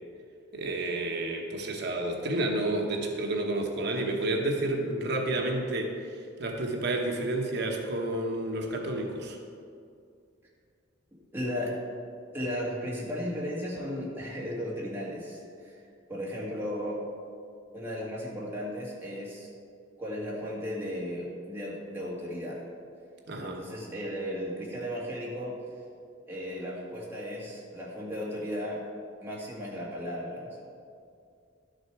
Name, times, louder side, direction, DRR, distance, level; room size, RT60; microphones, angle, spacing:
voice 1, 0.5-9.4 23.3-23.6, right 2 dB, 60° right, 2 dB, 1.0 m, -30 dB
voice 2, 11.3-11.8 12.3-15.8 16.1-17.0 17.7-19.5 20.0-22.6 23.3-25.6 26.3-28.8 29.2-30.6, equal, 10° right, -5 dB, 1.8 m, -35 dB
11.5 x 6.4 x 4.7 m, 2.3 s
head